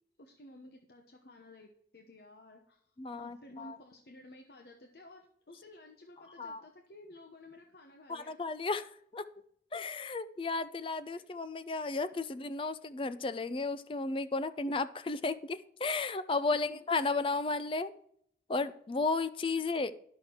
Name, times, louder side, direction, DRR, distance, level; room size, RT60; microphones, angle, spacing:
voice 1, 0.2-2.8 3.1-8.3 16.5-16.7, left 1 dB, 60° left, 3 dB, 0.9 m, -54 dB
voice 2, 3.0-3.8 6.4-6.6 8.1-9.3 9.7-17.9 18.5-19.9, left 3 dB, 30° left, 13 dB, 0.4 m, -34 dB
10.5 x 6.5 x 4.5 m, 0.67 s
head